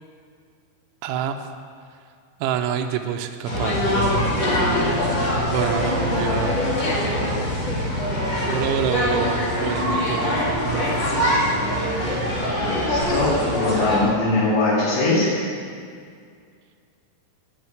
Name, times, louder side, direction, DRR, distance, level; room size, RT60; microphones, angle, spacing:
voice 1, 1.0-1.4 2.4-3.8 5.5-6.8 8.5-11.0, right 9 dB, 80° right, 5 dB, 2.9 m, -27 dB
sound 1, 3.5-14.0, left 1 dB, 40° left, 1.8 m, -23 dB
voice 2, 12.6-15.3, left 2 dB, 75° left, -11 dB, 5.2 m, -21 dB
11.0 x 6.5 x 9.3 m, 2.2 s
omnidirectional pair, 5.8 m